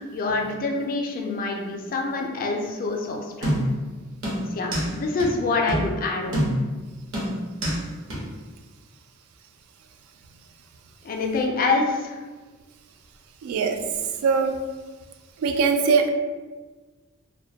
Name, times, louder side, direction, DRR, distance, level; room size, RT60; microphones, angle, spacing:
voice 1, 0.0-3.6 4.5-6.4 11.0-12.2, left 3 dB, 40° left, 1 dB, 0.3 m, -26 dB
sound 1, 3.4-3.9 4.2-4.9 5.2-5.3 5.7-5.9 6.3-6.8 7.1-7.8 8.1-8.2, equal, 65° right, 0.7 m, -25 dB
voice 2, 13.4-13.8 14.2-14.5 15.4-16.1, right 5 dB, 85° right, 10 dB, 0.3 m, -21 dB
2.2 x 2.1 x 2.7 m, 1.3 s
head